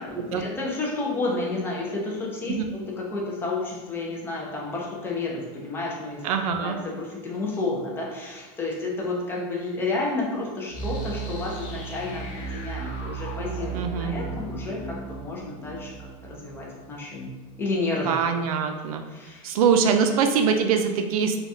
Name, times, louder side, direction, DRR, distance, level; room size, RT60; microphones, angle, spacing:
voice 1, 0.0-6.2 6.6-15.9 16.2-18.1 19.1-19.5, left 3 dB, 10° left, -3 dB, 0.4 m, -31 dB
voice 2, 6.2-6.8 13.7-14.1 18.1-19.0 19.4-21.4, right 6 dB, 85° right, 6 dB, 0.4 m, -23 dB
sound 1, 10.7-17.5, right 4 dB, 45° left, 0.8 m, -35 dB
3.4 x 2.2 x 2.6 m, 1.2 s
supercardioid pair, 160°, 18 cm